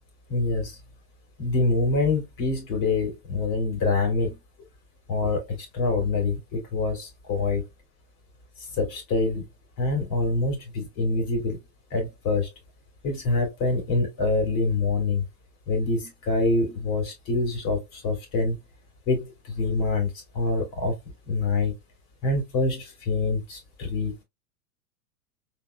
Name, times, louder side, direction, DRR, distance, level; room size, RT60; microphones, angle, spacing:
voice 1, 0.3-0.7 1.4-4.4 5.1-5.5 5.7-7.6 8.8-9.5 9.8-11.6 11.9-12.5 13.0-15.2 15.7-18.6 19.1-20.9 21.3-21.7 22.2-24.1, left 3 dB, 45° left, 2.9 m, -25 dB
4.0 x 3.9 x 2.2 m
hypercardioid pair, 115°, 45 cm